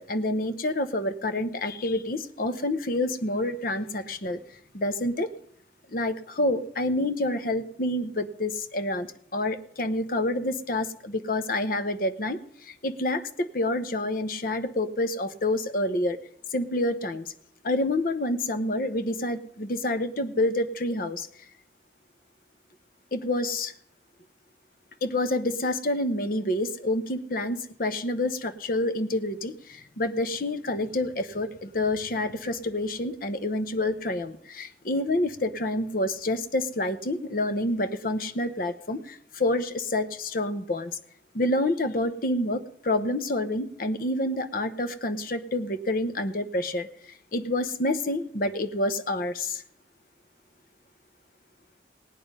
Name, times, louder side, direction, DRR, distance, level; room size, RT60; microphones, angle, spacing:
voice 1, 0.0-4.4 4.7-5.3 5.9-16.2 16.5-17.3 17.6-21.3 23.1-23.7 25.0-40.9 41.3-46.9 47.3-49.6, left 1 dB, 50° left, 10 dB, 0.8 m, -28 dB
17.5 x 9.3 x 5.4 m, 0.63 s
head